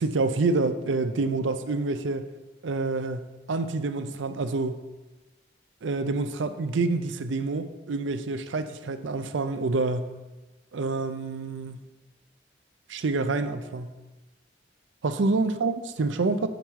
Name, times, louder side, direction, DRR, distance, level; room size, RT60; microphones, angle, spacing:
voice 1, 0.0-2.3 2.6-4.8 5.8-10.1 10.7-11.8 12.9-13.9 15.0-16.5, right 3 dB, 90° right, 10 dB, 0.5 m, -27 dB
7.3 x 5.2 x 4.6 m, 1.1 s
head